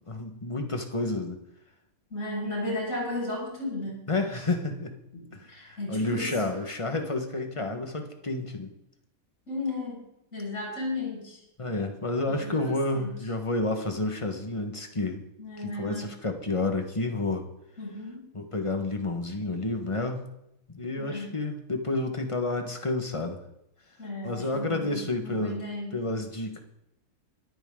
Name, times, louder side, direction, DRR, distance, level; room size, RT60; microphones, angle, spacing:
voice 1, 0.1-1.4 4.1-5.0 5.3-8.7 11.6-15.2 15.6-17.5 18.3-20.2 20.7-23.4 24.2-25.6 25.9-26.6, left 2 dB, 20° left, 5 dB, 1.5 m, -30 dB
voice 2, 2.1-4.0 4.3-4.4 5.5-6.3 9.5-10.0 10.3-11.4 12.3-13.1 15.4-16.1 17.8-18.2 21.0-21.4 24.0-26.0, left 2 dB, 50° left, -4 dB, 7.3 m, -34 dB
23.0 x 9.2 x 3.9 m, 0.82 s
omnidirectional pair, 1.6 m